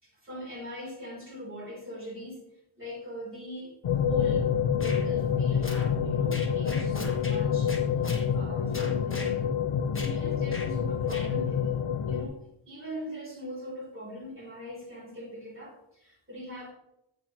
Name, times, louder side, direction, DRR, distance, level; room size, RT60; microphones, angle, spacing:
voice 1, 0.0-7.8 8.0-9.4 10.0-11.7 12.1-12.4 12.6-16.7, equal, 25° right, -3 dB, 3.4 m, -41 dB
sound 1, 3.8-12.2, left 7 dB, 85° left, 0.8 m, -27 dB
sound 2, 4.8-5.0 5.6-5.9 6.3-7.4 7.7-8.3 8.7-9.3 9.9-10.2 10.5-10.7 11.1-11.3, left 2 dB, 25° left, 1.4 m, -38 dB
8.7 x 8.3 x 3.0 m, 0.83 s
wide cardioid pair, 90°, 50 cm